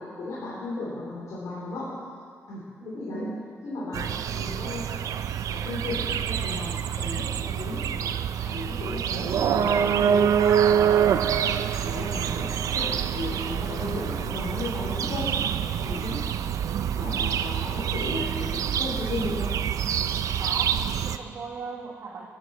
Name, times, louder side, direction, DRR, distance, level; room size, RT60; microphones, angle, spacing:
voice 1, 0.0-2.0 2.5-3.3 3.6-4.9 5.5-8.1 8.5-15.4 15.8-16.2 16.9-19.5, left 2 dB, 85° left, -7 dB, 2.9 m, -35 dB
voice 2, 2.8-3.5 20.4-22.3, right 4 dB, 65° right, -2 dB, 1.4 m, -38 dB
sound 1, 3.9-21.2, right 8 dB, 80° right, 0.5 m, -26 dB
20.5 x 8.9 x 4.1 m, 2.1 s
cardioid pair, 70°, 6 cm